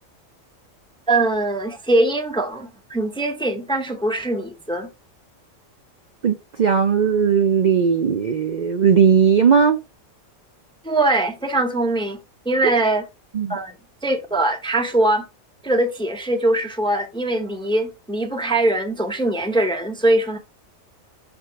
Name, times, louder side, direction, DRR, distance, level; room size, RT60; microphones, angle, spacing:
voice 1, 1.1-4.9 10.8-12.2 12.5-13.0 13.5-13.7 14.0-15.3 15.6-20.4, right 2 dB, 5° left, 0.5 m, -22 dB
voice 2, 6.2-9.8 13.3-13.6, right 6 dB, 75° right, 0.4 m, -17 dB
6.0 x 3.5 x 4.5 m
omnidirectional pair, 1.4 m